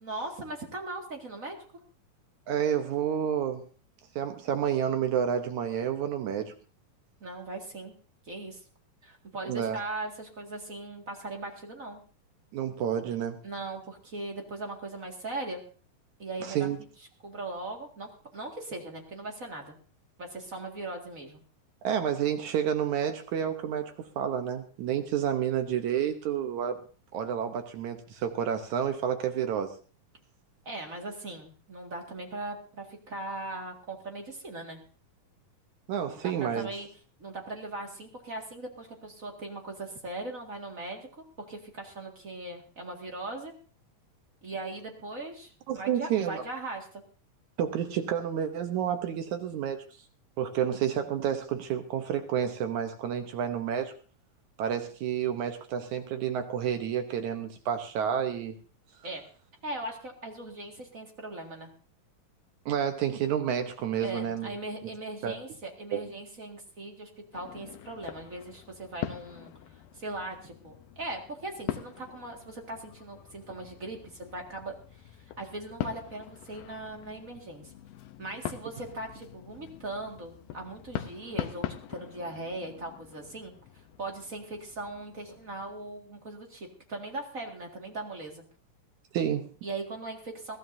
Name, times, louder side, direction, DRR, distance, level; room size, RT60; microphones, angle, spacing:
voice 1, 0.0-1.6 7.2-7.9 8.3-8.6 9.0-12.0 13.4-15.6 16.2-16.7 17.2-19.7 20.2-21.4 30.7-34.8 36.1-36.9 37.2-41.1 41.5-43.5 44.4-47.0 59.0-59.2 59.6-61.7 64.0-69.5 69.9-74.8 75.4-77.7 78.2-83.5 84.0-88.4 89.6-90.6, right 2 dB, 30° right, 2 dB, 1.7 m, -39 dB
voice 2, 2.5-3.7 4.2-6.6 9.4-9.8 12.5-13.4 16.4-16.8 21.8-26.8 27.1-29.7 35.9-36.7 45.7-46.4 47.6-49.8 50.4-53.9 54.6-58.6 62.7-64.5 65.2-65.3 65.9-66.0 89.1-89.5, right 9 dB, 70° right, 7 dB, 2.1 m, -30 dB
sound 1, 67.3-85.8, left 12 dB, 80° left, 2.6 m, -42 dB
21.5 x 15.0 x 2.7 m, 0.38 s
omnidirectional pair, 4.0 m